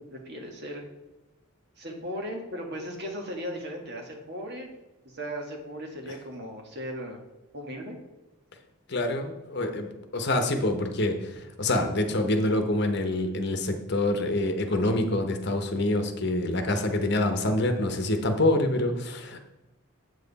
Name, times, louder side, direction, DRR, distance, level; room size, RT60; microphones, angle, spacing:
voice 1, 0.1-0.8 1.8-4.7 5.0-7.2 7.5-8.0, equal, 50° right, 1 dB, 1.7 m, -37 dB
voice 2, 8.9-19.5, left 1 dB, 55° left, 5 dB, 1.0 m, -26 dB
8.0 x 7.6 x 4.1 m, 1.0 s
head